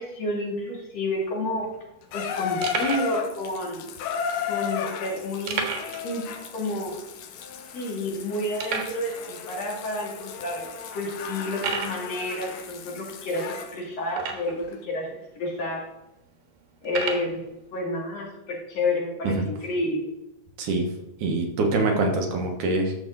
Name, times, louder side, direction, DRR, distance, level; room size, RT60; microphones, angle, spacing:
voice 1, 0.0-1.7 2.1-3.9 4.5-5.7 6.0-7.0 7.7-15.9 16.8-20.0, left 1 dB, 50° left, -2 dB, 3.3 m, -30 dB
sound 1, 1.2-1.3 1.4-1.6 2.1-2.2 2.6-3.1 3.9-4.0 5.5-6.1 6.3-6.4 6.9-7.0 7.6-7.7 8.6-9.0 9.8-9.9 10.5-10.6 11.5-12.0 14.1-14.7 15.4-15.5 16.8-17.3, right 5 dB, 85° right, 3.0 m, -31 dB
Water tap faucet / Bathtub (filling or washing), 2.1-13.8 14.7-14.8, left 8 dB, 80° left, 2.5 m, -34 dB
voice 2, 21.2-22.9, right 2 dB, 70° right, 2 dB, 2.7 m, -24 dB
11.5 x 7.0 x 3.9 m, 0.88 s
omnidirectional pair, 3.8 m